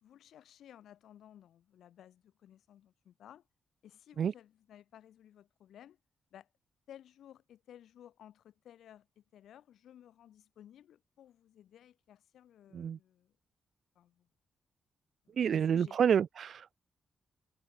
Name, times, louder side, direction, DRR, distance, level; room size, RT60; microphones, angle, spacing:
voice 1, 0.0-3.5 3.8-6.0 6.3-6.5 6.9-13.3 14.0-14.3 15.3-16.0, left 10 dB, 90° left, 3.5 m, -57 dB
voice 2, 15.4-16.8, right 8 dB, 55° right, 0.6 m, -29 dB
wide cardioid pair, 150°, 0 cm